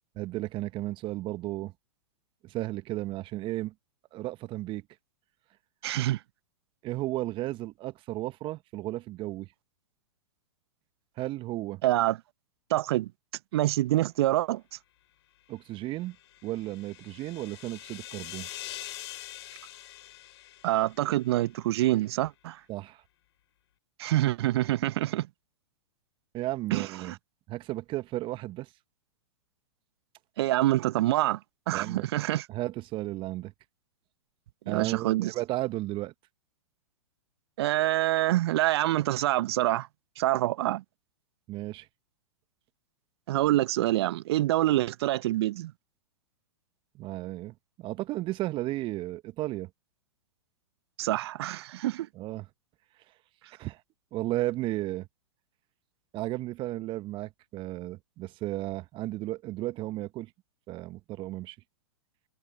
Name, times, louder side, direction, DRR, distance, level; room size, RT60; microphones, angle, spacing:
voice 1, 0.2-1.7 2.4-3.7 4.1-4.8 6.8-9.5 11.2-11.8 15.5-16.2 16.4-18.5 22.7-23.0 26.3-27.2 27.5-28.7 31.7-32.1 32.5-33.5 34.7-36.1 41.5-41.9 46.9-49.7 52.1-52.5 53.6-53.8 54.1-55.1 56.1-60.3 60.7-61.6, right 17 dB, 30° right, 1.1 m, -34 dB
voice 2, 5.8-6.2 11.8-12.2 12.7-13.1 13.5-14.6 20.6-22.6 24.0-25.3 26.7-27.2 30.4-31.4 31.7-32.5 34.7-35.3 37.6-39.9 40.2-40.8 43.3-45.7 51.0-52.1, right 15 dB, 55° right, 1.0 m, -26 dB
sound 1, 15.9-21.4, left 14 dB, 55° left, 3.3 m, -44 dB
figure-of-eight pair, 110°, 16 cm